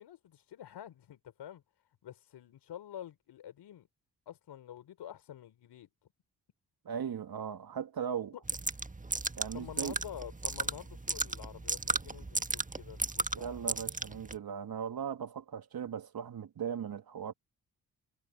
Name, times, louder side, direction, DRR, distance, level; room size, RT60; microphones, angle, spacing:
voice 1, 0.0-1.6 2.0-3.9 4.3-5.9 8.3-8.4 9.5-13.6, left 10 dB, 70° left, 4.8 m, -48 dB
voice 2, 6.8-8.3 9.4-10.0 13.3-17.3, right 8 dB, 60° right, 2.8 m, -38 dB
sound 1, 8.5-14.4, right 3 dB, 20° right, 1.6 m, -35 dB
hypercardioid pair, 45°, 42 cm